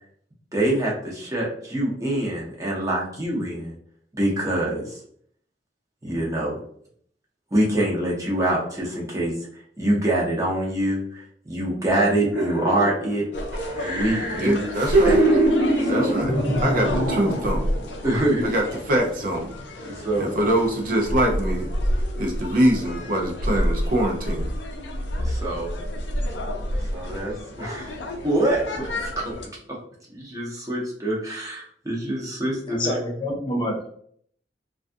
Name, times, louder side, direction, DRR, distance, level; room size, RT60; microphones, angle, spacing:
voice 1, 0.5-3.7 4.1-5.0 6.0-6.6 7.5-13.2 13.8-14.6 15.0-15.3 15.8-16.1 18.0-18.5 19.8-20.3 25.2-25.8 26.9-29.4 29.7-29.8 30.1-33.0, right 1 dB, 20° right, -3 dB, 0.7 m, -25 dB
sound 1, 12.3-13.1 13.5-17.7 18.1-18.2, right 1 dB, 90° right, 1.0 m, -23 dB
sound 2, 13.3-29.5, equal, 75° left, 0.5 m, -29 dB
voice 2, 14.4-15.2 15.9-17.7 18.4-19.5 20.2-21.7 22.2-24.5, right 1 dB, 50° right, 1 dB, 0.5 m, -24 dB
voice 3, 32.7-33.9, left 1 dB, 25° left, 0 dB, 0.5 m, -27 dB
2.3 x 2.3 x 2.5 m, 0.63 s
head